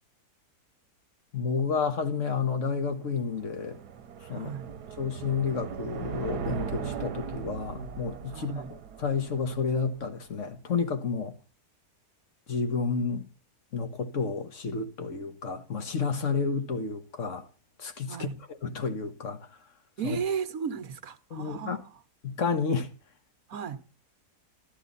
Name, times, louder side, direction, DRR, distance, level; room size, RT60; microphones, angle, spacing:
voice 1, 1.3-3.8 4.3-4.5 5.0-11.4 12.5-13.3 13.7-17.5 17.8-19.5 20.0-20.2 21.3-21.8 22.2-22.9, left 5 dB, 55° left, 1.7 m, -31 dB
sound 1, 2.8-10.1, right 7 dB, 85° right, 1.4 m, -39 dB
voice 2, 4.3-4.7 8.3-8.7 18.1-18.4 20.0-21.8 23.5-23.8, right 7 dB, 65° right, 1.5 m, -34 dB
13.5 x 12.5 x 4.1 m
omnidirectional pair, 1.7 m